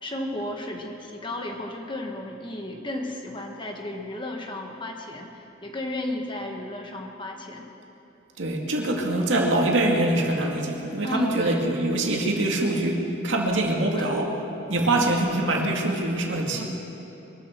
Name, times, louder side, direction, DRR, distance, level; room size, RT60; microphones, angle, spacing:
voice 1, 0.0-7.7 11.0-11.7 13.9-14.1 16.5-16.6, left 1 dB, 25° left, 2 dB, 1.4 m, -34 dB
voice 2, 8.4-14.3 14.7-16.6, right 1 dB, 85° right, 0 dB, 2.2 m, -24 dB
23.0 x 13.5 x 4.5 m, 3.0 s
head